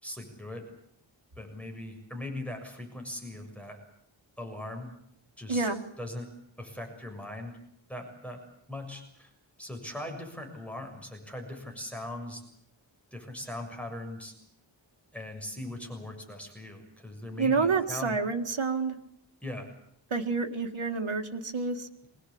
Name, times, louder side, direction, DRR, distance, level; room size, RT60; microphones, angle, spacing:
voice 1, 0.0-0.7 1.4-3.8 4.4-4.9 5.4-5.7 6.0-6.3 6.6-7.5 7.9-8.4 8.7-9.3 9.6-12.4 13.1-14.3 15.1-18.2 19.4-19.7, left 1 dB, 5° left, 2 dB, 6.9 m, -40 dB
voice 2, 5.5-5.8 17.4-19.0 20.1-21.9, right 4 dB, 85° right, 4 dB, 2.0 m, -28 dB
24.0 x 19.5 x 8.7 m, 0.73 s
wide cardioid pair, 70°, 47 cm